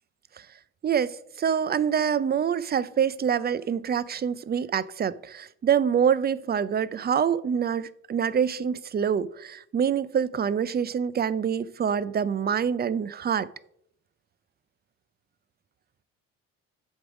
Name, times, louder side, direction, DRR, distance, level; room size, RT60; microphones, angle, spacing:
voice 1, 0.8-13.5, right 8 dB, 30° right, 0.4 m, -26 dB
7.9 x 3.6 x 6.2 m
supercardioid pair, 75°, 33 cm